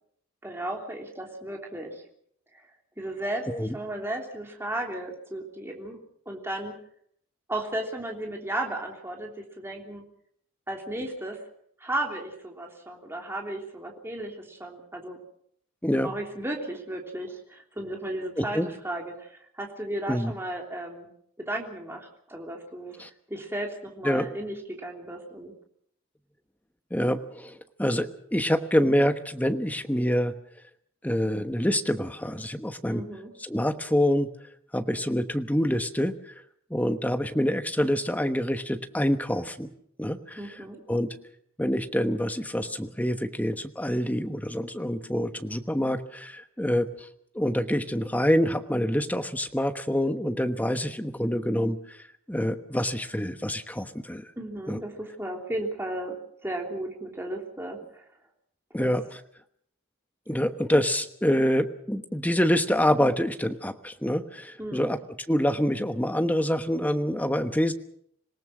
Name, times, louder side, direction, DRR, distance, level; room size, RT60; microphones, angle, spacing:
voice 1, 0.4-2.0 2.5-2.6 3.0-6.0 6.2-6.7 7.5-10.0 10.7-11.4 11.8-15.2 16.0-21.1 21.4-22.9 23.3-25.5 32.9-33.3 40.4-40.8 54.4-56.2 56.4-58.0 58.8-58.9 64.6-64.9, right 1 dB, 10° right, 1 dB, 3.2 m, -34 dB
voice 2, 18.4-18.7 20.1-20.3 23.0-23.1 24.0-24.3 26.9-30.3 31.0-33.0 33.4-34.3 34.7-36.3 36.7-39.7 40.0-40.4 40.9-41.1 41.6-47.1 47.3-52.0 52.3-54.3 54.7-54.8 58.7-59.2 60.3-65.0 65.3-67.7, equal, 10° left, 8 dB, 1.1 m, -26 dB
26.5 x 18.0 x 6.2 m, 0.68 s
head